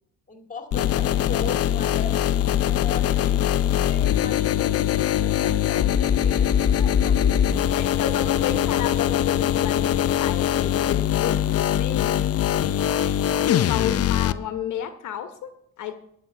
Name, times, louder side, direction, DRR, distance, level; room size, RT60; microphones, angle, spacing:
voice 1, 0.3-7.4, left 4 dB, 25° left, 5 dB, 2.1 m, -39 dB
sound 1, 0.7-14.3, left 10 dB, 55° left, 0.6 m, -22 dB
voice 2, 7.7-12.1 13.5-15.9, left 9 dB, 75° left, 8 dB, 1.0 m, -31 dB
11.5 x 5.6 x 7.7 m, 0.74 s
cardioid pair, 90°, 30 cm